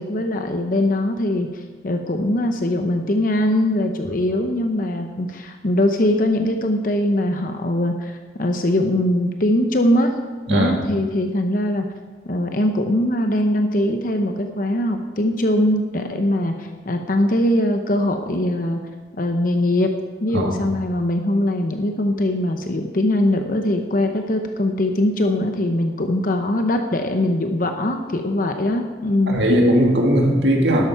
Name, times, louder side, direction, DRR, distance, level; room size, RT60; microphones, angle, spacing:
voice 1, 0.0-10.1 10.5-11.8 12.3-18.8 19.2-19.9 20.2-29.3, left 1 dB, 50° left, 5 dB, 0.8 m, -21 dB
voice 2, 29.3-30.8, equal, 85° right, 1 dB, 2.1 m, -18 dB
12.5 x 11.5 x 4.7 m, 1.4 s
head